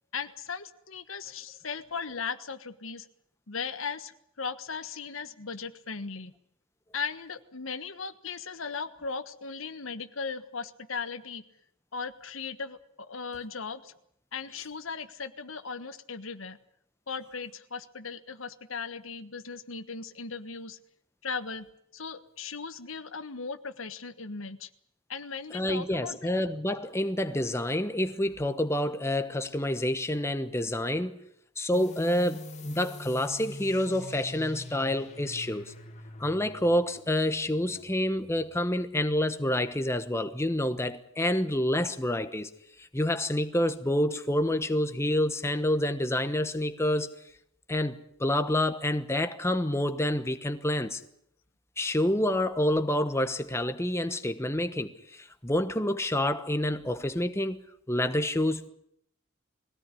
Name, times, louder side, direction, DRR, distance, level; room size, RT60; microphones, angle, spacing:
voice 1, 0.1-3.1 3.5-6.3 6.9-11.4 11.9-13.9 14.3-16.6 17.1-20.8 21.2-21.7 21.9-24.7 25.1-26.3, left 5 dB, 75° left, 1.4 m, -37 dB
voice 2, 25.5-31.2 31.6-35.7 36.2-42.5 42.8-47.1 47.7-51.0 51.8-57.6 57.9-58.7, left 1 dB, 15° left, 1.1 m, -28 dB
sound 1, 31.7-39.0, left 2 dB, 35° left, 2.3 m, -45 dB
22.0 x 17.5 x 9.8 m
head